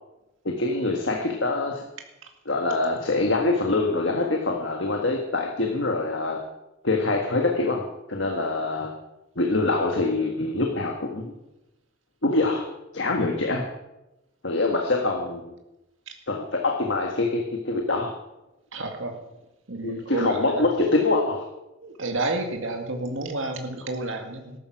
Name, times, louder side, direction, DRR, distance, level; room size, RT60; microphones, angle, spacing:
voice 1, 0.4-1.8 2.4-6.4 6.8-8.9 9.3-11.3 12.2-12.7 12.9-13.7 14.4-15.4 16.3-18.1 19.8-21.4, left 2 dB, 65° left, 2 dB, 1.7 m, -24 dB
voice 2, 18.7-19.1 19.7-20.6 21.8-24.5, right 2 dB, 80° right, 4 dB, 2.0 m, -30 dB
14.0 x 12.5 x 6.0 m, 0.94 s
head